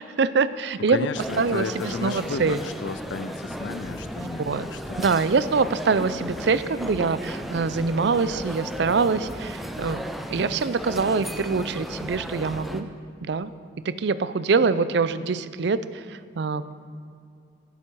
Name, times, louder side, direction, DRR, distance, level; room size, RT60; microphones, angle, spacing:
voice 1, 0.0-1.0 1.4-2.6 4.2-4.7 5.0-10.0 10.3-12.9 13.2-13.5 13.8-16.7, right 4 dB, 60° right, 14 dB, 0.4 m, -24 dB
voice 2, 0.9-5.1, left 4 dB, 70° left, 12 dB, 0.5 m, -33 dB
sound 1, 1.2-12.8, equal, ahead, 0.4 m, -35 dB
17.0 x 7.2 x 4.6 m, 2.4 s
head